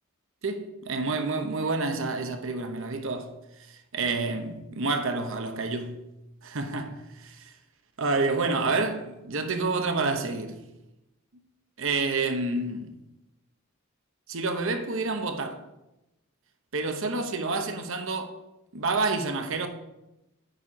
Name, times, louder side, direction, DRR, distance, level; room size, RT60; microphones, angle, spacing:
voice 1, 0.4-3.3 3.7-6.0 6.4-7.5 8.0-10.6 11.8-13.0 14.3-15.6 16.7-18.3 18.7-19.7, right 3 dB, 65° right, 0.9 m, -29 dB
9.1 x 4.3 x 5.1 m
head